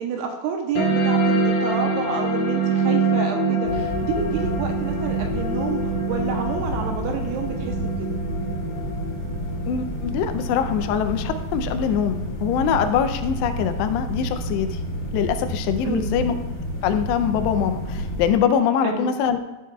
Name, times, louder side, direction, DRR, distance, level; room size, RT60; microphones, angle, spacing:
voice 1, 0.0-5.8 6.1-8.2 15.8-16.1 18.8-19.1, right 6 dB, 80° right, 3 dB, 2.5 m, -29 dB
sound 1, 0.7-11.7, right 3 dB, 60° left, 2.7 m, -25 dB
sound 2, 3.6-18.3, equal, 45° left, 1.0 m, -30 dB
voice 2, 9.7-14.8 15.1-16.3 16.8-19.4, left 8 dB, 85° left, 8 dB, 2.7 m, -23 dB
13.5 x 7.4 x 2.3 m, 1.1 s
omnidirectional pair, 5.0 m